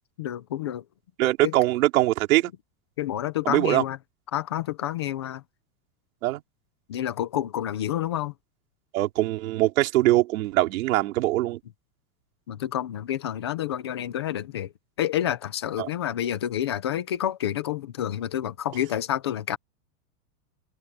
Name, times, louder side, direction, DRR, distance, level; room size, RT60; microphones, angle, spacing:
voice 1, 0.2-0.8 1.4-1.5 3.0-4.0 4.3-5.4 6.9-8.3 12.5-14.7 15.0-19.6, left 11 dB, 20° left, 0.3 m, -29 dB
voice 2, 1.2-2.5 3.4-3.8 6.2-6.4 8.9-11.6 15.8-15.9, right 17 dB, 65° right, 4.6 m, -22 dB
supercardioid pair, 165°, 46 cm